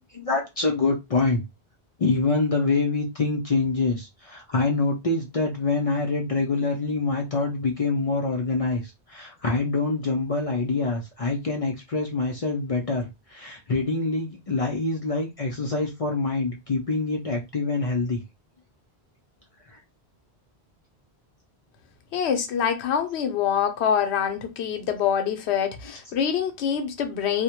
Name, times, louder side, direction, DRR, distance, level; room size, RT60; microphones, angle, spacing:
voice 1, 0.1-1.4 2.0-18.2 19.7-19.8 26.1-26.2, left 3 dB, 50° left, 0.4 m, -25 dB
voice 2, 22.1-27.4, left 8 dB, 90° left, 0.9 m, -25 dB
2.2 x 2.1 x 2.8 m
omnidirectional pair, 1.1 m